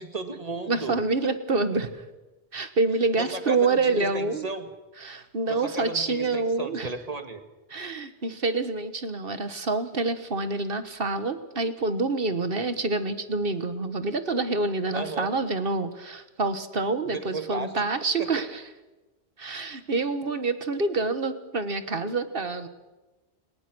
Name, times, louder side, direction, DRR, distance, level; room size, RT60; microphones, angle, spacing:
voice 1, 0.0-1.0 3.2-4.7 5.5-7.4 14.9-15.3 17.1-17.7 18.2-18.3, right 3 dB, 40° right, 7 dB, 2.0 m, -34 dB
voice 2, 0.7-2.0 2.5-4.5 5.0-6.9 7.7-18.6 19.4-22.7, right 3 dB, 60° right, 11 dB, 1.7 m, -27 dB
30.0 x 18.5 x 6.3 m, 1.1 s
omnidirectional pair, 1.1 m